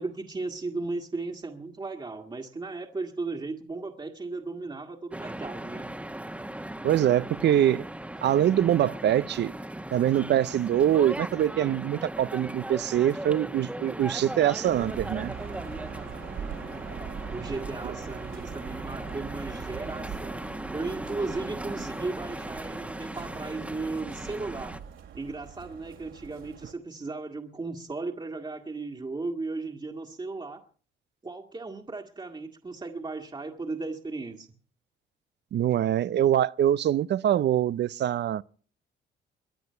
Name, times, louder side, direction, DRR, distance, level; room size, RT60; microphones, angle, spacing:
voice 1, 0.0-5.9 17.3-20.5 20.7-24.8 25.1-30.6 31.2-34.5, right 3 dB, 25° right, 1.8 m, -36 dB
sound 1, 5.1-24.8, right 1 dB, 5° right, 1.3 m, -38 dB
voice 2, 6.8-7.9 8.2-9.5 9.9-15.3 35.5-38.4, right 11 dB, 60° right, 0.7 m, -24 dB
sound 2, 14.7-26.7, right 8 dB, 75° right, 3.2 m, -42 dB
23.5 x 9.5 x 5.6 m
cardioid pair, 90°, 20 cm